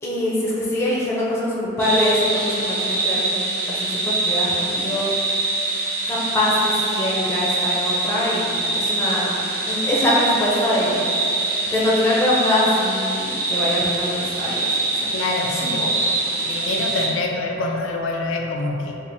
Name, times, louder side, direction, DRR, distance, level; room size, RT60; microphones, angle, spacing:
voice 1, 0.0-3.3 3.7-5.1 6.1-9.3 9.7-11.3 11.6-14.9 15.5-15.9 16.2-16.5, left 1 dB, 15° left, -7 dB, 0.5 m, -23 dB
sound 1, 1.8-17.1, right 2 dB, 45° right, 0.6 m, -24 dB
voice 2, 15.1-15.8 16.4-19.0, left 2 dB, 75° left, 0 dB, 0.3 m, -25 dB
4.4 x 2.4 x 2.6 m, 2.8 s
head